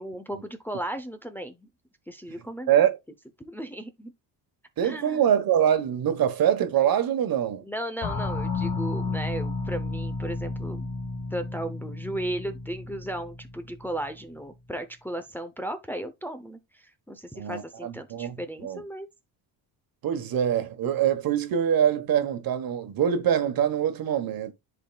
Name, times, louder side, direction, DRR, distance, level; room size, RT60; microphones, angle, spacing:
voice 1, 0.0-1.7 2.1-2.7 3.4-4.1 4.8-5.3 7.6-10.9 11.3-19.1, right 1 dB, 5° left, 0.6 m, -35 dB
voice 2, 4.8-7.6 17.3-18.4 18.6-18.8 20.0-24.5, right 9 dB, 60° right, 1.2 m, -24 dB
sound 1, 8.0-14.3, left 3 dB, 75° left, 2.0 m, -32 dB
10.5 x 4.1 x 2.3 m
cardioid pair, 120°, 40 cm